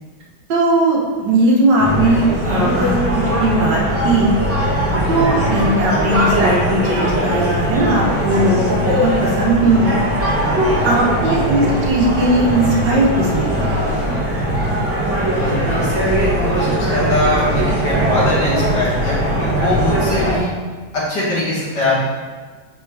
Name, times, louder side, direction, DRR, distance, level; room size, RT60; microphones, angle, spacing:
voice 1, 0.5-4.3 5.1-10.0 10.6-13.7, right 2 dB, 65° right, -3 dB, 1.6 m, -18 dB
sound 1, 1.8-20.4, equal, 15° right, 0.5 m, -19 dB
voice 2, 5.0-5.4 11.2-11.4 15.4-20.5 20.9-22.0, equal, 60° left, -8 dB, 2.5 m, -21 dB
5.6 x 3.7 x 4.6 m, 1.4 s
omnidirectional pair, 2.2 m